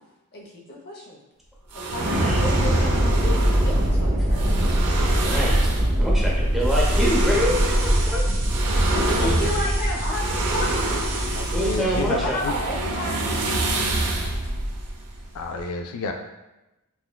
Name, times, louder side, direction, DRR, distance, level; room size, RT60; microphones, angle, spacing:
voice 1, 0.3-1.2 1.7-4.4 8.9-11.0 12.2-13.7 14.4-14.5, left 1 dB, 45° left, -1 dB, 0.7 m, -32 dB
sound 1, 1.7-15.6, right 2 dB, 85° right, 0.6 m, -28 dB
sound 2, 1.9-13.0, equal, 45° right, 0.6 m, -23 dB
voice 2, 2.0-2.4 4.6-5.7 6.0-8.2 9.2-9.3 11.5-12.4, equal, ahead, -4 dB, 0.6 m, -27 dB
sound 3, 6.7-11.8, right 3 dB, 65° right, 1.0 m, -36 dB
voice 3, 11.3-12.5 15.3-16.1, left 4 dB, 75° left, 4 dB, 0.3 m, -30 dB
5.9 x 2.1 x 2.2 m, 0.99 s
head